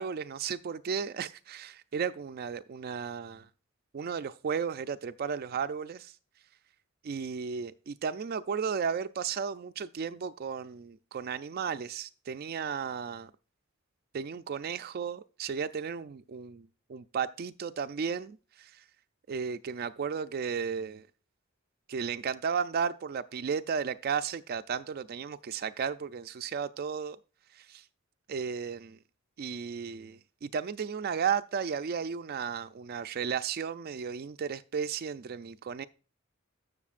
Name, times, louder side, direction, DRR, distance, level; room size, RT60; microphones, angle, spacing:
voice 1, 0.0-3.5 3.9-6.1 7.0-13.3 14.1-18.8 19.3-21.0 21.9-27.2 27.5-27.8 28.3-29.0 29.4-35.9, right 6 dB, 45° right, 0.4 m, -34 dB
14.5 x 6.5 x 2.5 m
head